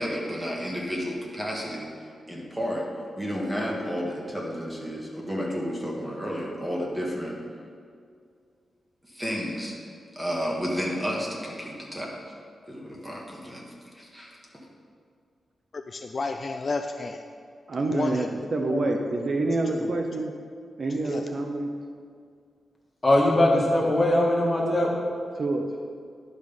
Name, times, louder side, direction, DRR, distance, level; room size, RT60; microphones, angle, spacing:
voice 1, 0.0-1.9 2.3-2.9 3.1-7.4 9.0-9.8 10.1-12.2 12.7-13.7 13.9-14.4, equal, 10° right, -2 dB, 1.5 m, -31 dB
voice 2, 15.7-17.2 17.9-19.9 20.9-21.3, left 3 dB, 40° left, 6 dB, 0.4 m, -33 dB
voice 3, 17.7-20.3 20.8-21.7 25.4-25.8, right 2 dB, 45° right, 4 dB, 0.6 m, -27 dB
voice 4, 23.0-24.9, left 1 dB, 20° left, -3 dB, 1.7 m, -21 dB
11.0 x 5.2 x 5.4 m, 2.2 s
wide cardioid pair, 140°, 0 cm